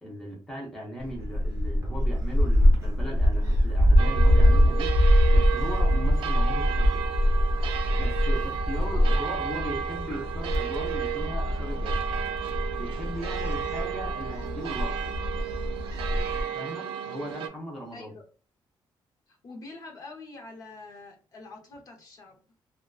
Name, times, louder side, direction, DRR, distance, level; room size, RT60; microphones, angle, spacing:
voice 1, 0.0-5.0 5.3-7.1 7.9-12.0 12.7-15.0 16.5-18.1, equal, 5° left, -2 dB, 0.5 m, -38 dB
Gull seagull, 1.0-16.4, equal, 35° right, 0.7 m, -24 dB
sound 1, 4.0-17.5, right 9 dB, 80° right, 0.4 m, -33 dB
voice 2, 8.9-9.5 17.9-18.2 19.3-22.4, left 3 dB, 40° left, 2 dB, 0.7 m, -45 dB
2.5 x 2.2 x 2.2 m, 0.39 s
cardioid pair, 180°, 9 cm